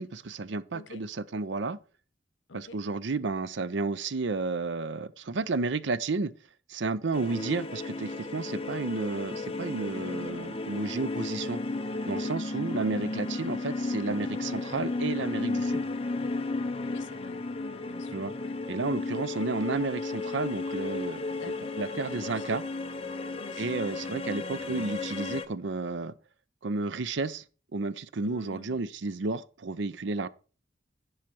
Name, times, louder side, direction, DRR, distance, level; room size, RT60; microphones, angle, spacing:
voice 1, 0.0-1.8 2.5-6.3 6.7-11.6 12.1-15.8 18.1-18.3 18.7-21.3 21.8-22.6 23.6-26.1 26.6-27.4 27.7-30.3, right 3 dB, 80° right, 0.6 m, -32 dB
voice 2, 0.7-1.0 2.5-2.8 16.8-18.6 21.3-22.5 23.4-24.0 28.2-28.8, left 3 dB, 90° left, 0.9 m, -48 dB
sound 1, 7.1-25.5, left 3 dB, 30° left, 0.7 m, -34 dB
10.5 x 4.9 x 6.0 m
head